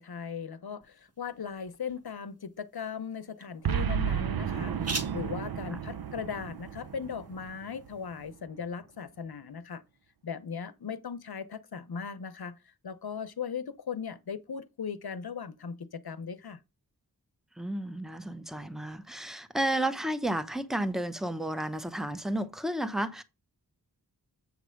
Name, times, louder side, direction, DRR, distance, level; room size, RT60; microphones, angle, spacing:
voice 1, 0.0-4.8 5.1-9.8 10.2-16.6, left 6 dB, 70° left, 0.8 m, -38 dB
sound 1, 0.8-8.3, right 3 dB, 40° right, 1.4 m, -45 dB
Boom, 3.6-8.0, right 8 dB, 65° right, 0.6 m, -33 dB
voice 2, 17.6-23.2, right 1 dB, ahead, 0.9 m, -32 dB
7.9 x 3.3 x 6.4 m
wide cardioid pair, 50°, 39 cm